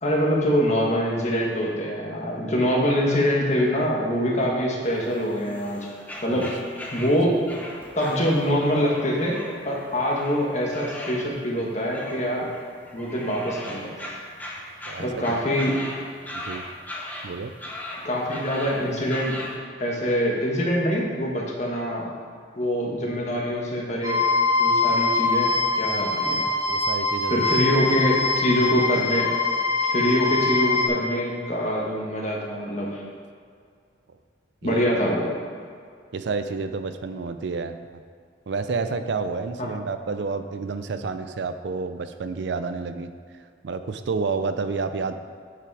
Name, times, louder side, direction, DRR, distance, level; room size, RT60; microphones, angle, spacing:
voice 1, 0.0-5.9 6.2-6.5 6.9-7.4 7.9-9.4 9.6-12.5 12.9-13.9 15.0-15.8 18.0-19.3 19.8-22.1 22.6-24.2 24.6-26.4 27.3-29.3 29.9-33.0 34.6-35.3 39.6-39.7, equal, 40° left, -2 dB, 1.5 m, -24 dB
sound 1, 4.8-19.6, left 1 dB, 10° left, 0.9 m, -39 dB
voice 2, 14.9-15.4 16.3-16.6 17.2-17.5 26.7-27.4 34.6-34.9 36.1-37.8 38.5-43.1 43.6-45.1, right 4 dB, 70° right, 9 dB, 0.4 m, -29 dB
sound 2, 24.0-30.9, left 3 dB, 20° right, 1.2 m, -23 dB
8.4 x 5.8 x 4.8 m, 2.1 s
head